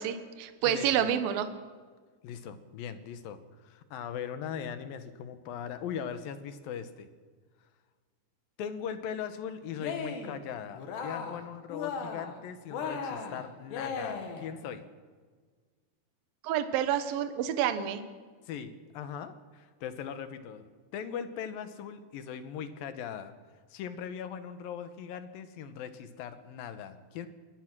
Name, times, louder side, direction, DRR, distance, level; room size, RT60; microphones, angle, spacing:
voice 1, 0.0-1.5 16.4-18.0, right 10 dB, 70° right, 10 dB, 2.8 m, -28 dB
voice 2, 0.6-1.1 2.2-7.1 8.6-14.8 18.5-23.3 23.7-27.3, left 8 dB, 70° left, 11 dB, 2.5 m, -40 dB
Cheering, 9.7-10.4 10.7-11.4 11.7-12.4 12.7-14.5, left 5 dB, 90° left, 4.2 m, -36 dB
22.5 x 19.5 x 6.1 m, 1.5 s
omnidirectional pair, 4.8 m